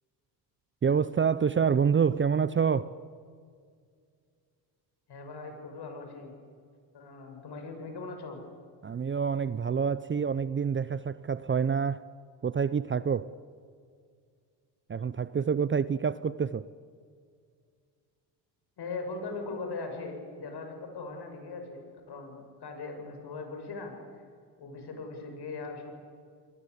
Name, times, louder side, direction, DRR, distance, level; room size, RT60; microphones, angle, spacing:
voice 1, 0.8-2.9 8.8-12.0 12.4-13.3 14.9-16.7, right 6 dB, 25° right, 0.7 m, -27 dB
voice 2, 5.1-6.3 6.9-8.4 18.8-23.9 24.6-25.9, left 3 dB, 55° left, 7.4 m, -40 dB
30.0 x 21.5 x 8.4 m
supercardioid pair, 75°, 47 cm